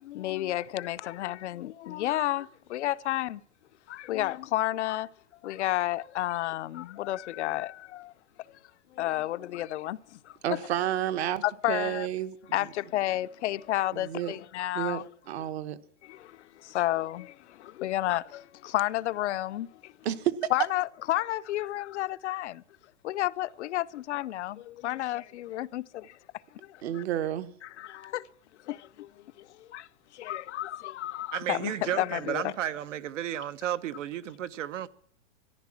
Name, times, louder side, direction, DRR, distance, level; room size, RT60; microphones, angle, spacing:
voice 1, 0.0-3.4 3.9-5.1 5.4-8.1 8.5-8.6 8.9-10.6 11.4-12.1 12.5-15.1 16.0-19.9 20.5-22.6 23.0-26.2 26.5-27.0 27.6-28.3 28.6-32.5, left 14 dB, 65° left, 0.6 m, -31 dB
voice 2, 10.4-12.4 13.9-14.3 14.7-15.8 20.0-20.4 26.8-27.5, right 12 dB, 60° right, 1.2 m, -30 dB
voice 3, 31.3-34.9, right 11 dB, 80° right, 1.0 m, -33 dB
14.0 x 11.0 x 7.3 m
supercardioid pair, 165°, 37 cm